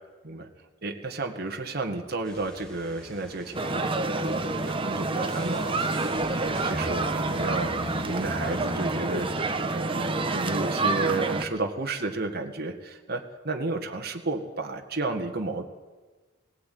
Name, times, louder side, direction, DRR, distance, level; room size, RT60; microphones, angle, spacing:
voice 1, 0.8-9.3 9.7-15.7, right 3 dB, 50° right, 3 dB, 1.8 m, -32 dB
sound 1, 2.2-9.7, equal, 5° left, 3.5 m, -42 dB
sound 2, 3.5-11.4, right 2 dB, 25° right, 1.2 m, -28 dB
19.0 x 16.5 x 9.4 m, 1.3 s
head